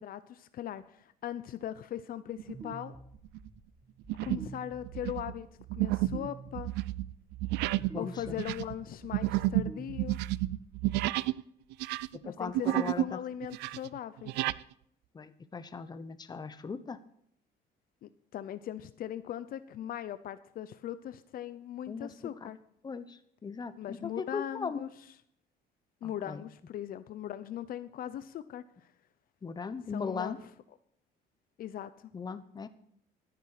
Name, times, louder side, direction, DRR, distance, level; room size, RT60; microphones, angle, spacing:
voice 1, 0.0-3.0 4.2-6.7 8.0-10.2 12.2-14.3 18.0-22.6 23.8-24.9 26.0-28.6 29.9-30.4 31.6-31.9, left 11 dB, 60° left, 13 dB, 0.7 m, -39 dB
sound 1, 2.4-2.7 3.2-3.5 4.1-4.6 4.8-11.4 11.7-13.1 13.4-14.6, right 17 dB, 90° right, 0.4 m, -31 dB
sound 2, 2.5-10.8, right 3 dB, 20° right, 2.1 m, -50 dB
voice 2, 7.9-8.4 12.1-13.2 15.1-17.0 21.9-22.1 22.4-22.5 22.8-24.9 26.0-26.4 29.4-30.4 32.1-32.7, left 5 dB, 25° left, 12 dB, 1.0 m, -38 dB
12.0 x 10.0 x 6.6 m, 0.69 s
cardioid pair, 110°, 17 cm